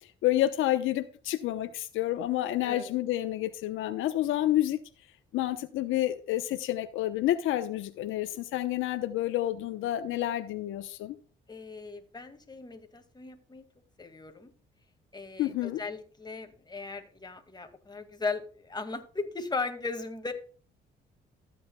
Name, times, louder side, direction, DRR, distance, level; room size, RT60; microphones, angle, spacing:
voice 1, 0.2-4.8 5.3-11.2 15.4-15.8, left 13 dB, 90° left, 0.8 m, -29 dB
voice 2, 2.6-2.9 11.5-13.6 14.0-14.5 15.1-20.3, left 4 dB, 20° left, 2.0 m, -37 dB
14.5 x 8.5 x 2.2 m
cardioid pair, 90°, 20 cm